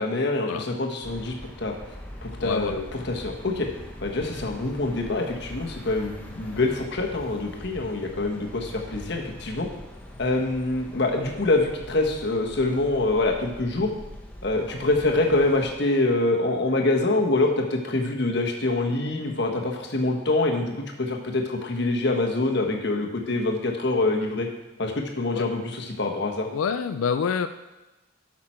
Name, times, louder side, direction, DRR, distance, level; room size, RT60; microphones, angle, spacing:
voice 1, 0.0-1.7 2.2-3.7 4.0-9.7 10.2-13.9 14.4-24.5 24.8-26.5, left 2 dB, 55° left, 1 dB, 1.3 m, -25 dB
sound 1, 1.0-15.7, left 1 dB, 10° left, 0.9 m, -42 dB
voice 2, 2.4-2.8 25.3-25.5 26.5-27.5, left 6 dB, 85° left, 10 dB, 0.4 m, -27 dB
12.0 x 5.9 x 4.4 m, 1.1 s
head